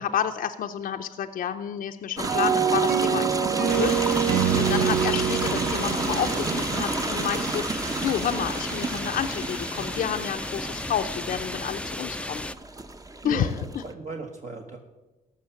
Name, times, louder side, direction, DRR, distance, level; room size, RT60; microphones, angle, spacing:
voice 1, 0.0-4.1 4.6-12.5 13.2-13.5, left 9 dB, 70° left, 6 dB, 0.6 m, -30 dB
sound 1, 2.2-13.9, right 2 dB, 25° right, 0.8 m, -31 dB
sound 2, 2.2-7.4, right 8 dB, 90° right, 0.5 m, -26 dB
sound 3, 3.7-12.6, left 2 dB, 10° left, 0.4 m, -34 dB
voice 2, 13.2-14.8, right 4 dB, 55° right, 2 dB, 1.2 m, -37 dB
14.0 x 5.7 x 7.1 m, 1.1 s
cardioid pair, 75°, 15 cm